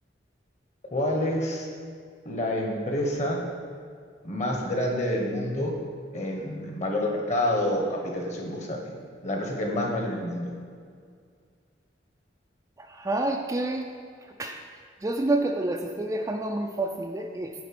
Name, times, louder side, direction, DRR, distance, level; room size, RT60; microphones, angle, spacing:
voice 1, 0.9-1.7 2.2-3.4 4.2-5.8 6.1-8.9 9.2-10.5, left 1 dB, 40° left, 0 dB, 1.3 m, -28 dB
voice 2, 12.8-13.8 14.4-14.6 15.0-17.5, right 2 dB, 15° right, 3 dB, 0.4 m, -28 dB
9.4 x 4.1 x 6.0 m, 2.1 s
head